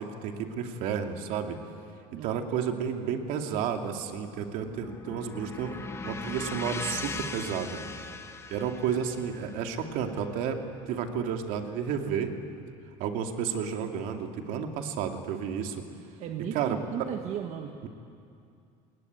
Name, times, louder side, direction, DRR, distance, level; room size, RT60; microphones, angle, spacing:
voice 1, 0.0-1.6 2.2-5.8 6.0-7.8 8.5-10.6 10.9-12.3 13.0-15.8 16.5-16.8, right 7 dB, 65° right, 4 dB, 2.6 m, -31 dB
voice 2, 2.1-2.4 16.2-17.8, right 9 dB, 50° right, 4 dB, 1.5 m, -36 dB
sound 1, 4.0-12.3, left 3 dB, 20° left, 1.3 m, -41 dB
29.0 x 20.0 x 9.5 m, 2.5 s
cardioid pair, 145°, 15 cm